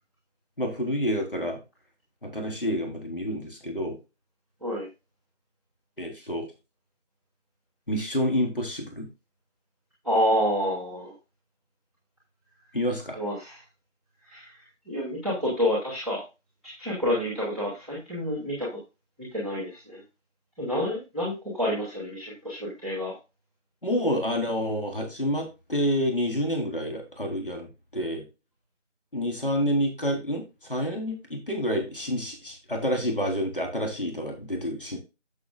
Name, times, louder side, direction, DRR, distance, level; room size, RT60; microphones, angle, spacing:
voice 1, 0.6-1.6 2.2-4.0 6.0-6.5 7.9-9.1 12.7-13.2 23.8-28.2 29.1-35.0, equal, 50° left, 2 dB, 3.9 m, -28 dB
voice 2, 10.0-11.1 13.1-13.6 14.3-14.5 14.9-16.2 16.6-18.7 19.2-20.0 20.6-23.1, equal, ahead, -14 dB, 1.4 m, -28 dB
11.5 x 7.4 x 2.4 m, 0.27 s
figure-of-eight pair, 175°, 36 cm